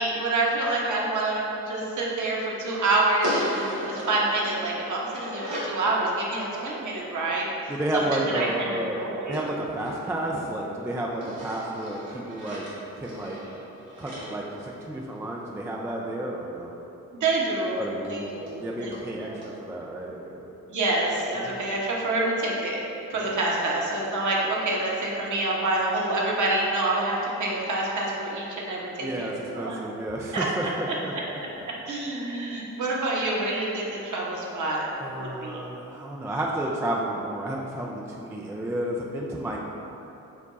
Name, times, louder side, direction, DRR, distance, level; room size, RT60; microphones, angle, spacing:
voice 1, 0.0-7.5 7.9-9.4 17.1-18.9 19.2-19.4 20.7-22.8 23.1-29.8 30.3-31.2 31.9-34.9 35.2-35.6, right 2 dB, 45° right, -4 dB, 1.0 m, -27 dB
sound 1, 3.2-5.8 9.3-10.7 11.2-15.3 17.2-17.3 17.6-17.7 18.0-18.1 18.5-18.6 18.9-19.0 19.4-19.5, equal, 75° right, 1.2 m, -36 dB
voice 2, 7.7-12.7 13.0-13.4 14.0-16.7 17.8-18.2 18.6-20.5 21.3-21.6 29.0-31.1 35.0-39.6, right 1 dB, 5° right, -2 dB, 0.4 m, -31 dB
5.1 x 2.2 x 4.0 m, 2.9 s
hypercardioid pair, 40°, 42 cm